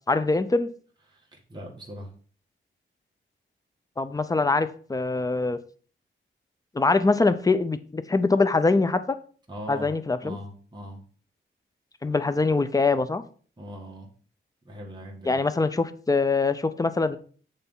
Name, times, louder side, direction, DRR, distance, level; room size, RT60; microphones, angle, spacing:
voice 1, 0.1-0.7 4.0-5.6 6.7-9.2 9.7-10.4 12.0-13.2 15.3-17.2, left 3 dB, 15° left, 0.5 m, -23 dB
voice 2, 1.1-2.1 9.5-9.9 10.2-11.0 13.6-14.1 14.6-15.4, equal, 20° right, 1.6 m, -40 dB
8.1 x 3.4 x 5.4 m
wide cardioid pair, 115°, 21 cm